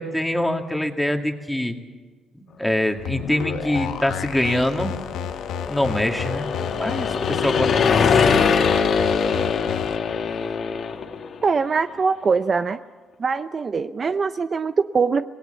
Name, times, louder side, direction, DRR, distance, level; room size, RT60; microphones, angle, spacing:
voice 1, 0.0-1.8 2.4-4.9 5.7-6.5 6.7-8.5, left 1 dB, 5° left, 4 dB, 2.4 m, -24 dB
sound 1, 3.0-10.0, left 8 dB, 85° left, 1.3 m, -32 dB
sound 2, 4.5-11.4, left 6 dB, 60° left, 1.9 m, -22 dB
voice 2, 11.4-12.8 13.2-15.3, right 5 dB, 40° right, 11 dB, 0.6 m, -22 dB
25.0 x 19.0 x 7.0 m, 1.4 s
cardioid pair, 90°, 0 cm